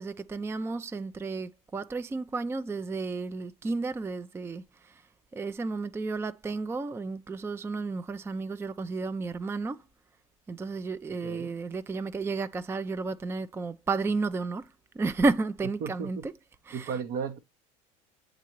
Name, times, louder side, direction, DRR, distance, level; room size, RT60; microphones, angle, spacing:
voice 1, 0.0-5.0 5.3-9.8 10.5-16.4 16.6-17.0, right 3 dB, 15° right, 0.4 m, -32 dB
voice 2, 15.8-16.3 16.7-17.4, right 7 dB, 55° right, 0.9 m, -34 dB
8.2 x 3.8 x 3.0 m
hypercardioid pair, 80°, 18 cm